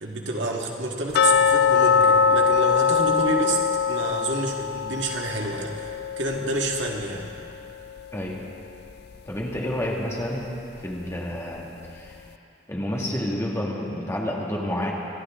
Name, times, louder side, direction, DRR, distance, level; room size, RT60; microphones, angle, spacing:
voice 1, 0.0-3.6 3.9-7.3, right 2 dB, 85° right, 0 dB, 1.9 m, -29 dB
sound 1, 1.1-8.0 8.3-8.4 8.9-9.0 9.5-9.6, left 6 dB, 60° left, 0.4 m, -22 dB
voice 2, 9.3-10.5 10.8-11.7 11.9-12.2 12.7-14.9, left 1 dB, 15° left, -3 dB, 2.0 m, -29 dB
26.5 x 12.0 x 3.7 m, 2.8 s
head